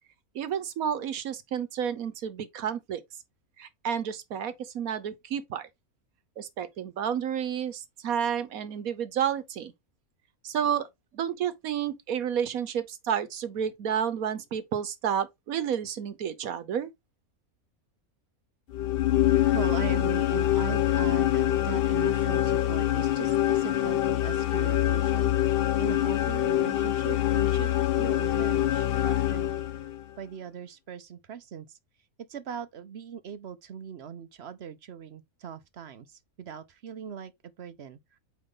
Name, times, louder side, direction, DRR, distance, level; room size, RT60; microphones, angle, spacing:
voice 1, 0.3-3.0 3.6-5.7 6.4-9.7 10.4-10.9 11.1-16.9, right 8 dB, 75° right, 1.4 m, -30 dB
sound 1, 18.7-30.0, left 13 dB, 65° left, 0.5 m, -25 dB
voice 2, 19.5-29.6 30.2-31.8 32.2-37.3 37.6-38.2, right 8 dB, 55° right, 0.8 m, -40 dB
8.6 x 3.2 x 3.7 m
omnidirectional pair, 1.5 m